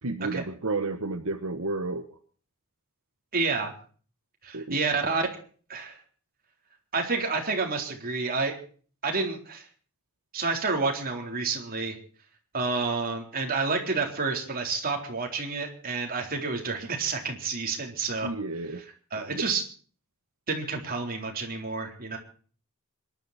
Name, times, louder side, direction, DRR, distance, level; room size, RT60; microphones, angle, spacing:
voice 1, 0.0-2.2 4.5-4.8 18.2-18.8 19.3-19.5, right 2 dB, 65° right, 6 dB, 1.3 m, -31 dB
voice 2, 3.3-3.7 4.4-5.3 5.7-6.0 6.9-8.5 9.0-9.7 10.3-12.0 12.5-18.3 19.1-19.6 20.5-22.2, right 4 dB, 45° right, 2 dB, 4.0 m, -29 dB
26.5 x 11.5 x 4.3 m, 0.43 s
head